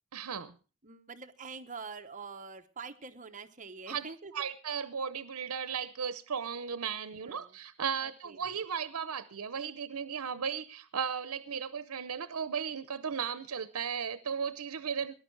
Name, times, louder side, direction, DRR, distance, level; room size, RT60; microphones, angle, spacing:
voice 1, 0.1-0.5 3.9-4.1 4.3-15.1, right 7 dB, 90° right, 13 dB, 0.7 m, -36 dB
voice 2, 0.8-4.3 7.2-7.6 8.0-8.4, right 4 dB, 35° right, 8 dB, 1.0 m, -45 dB
19.0 x 11.5 x 4.6 m, 0.36 s
head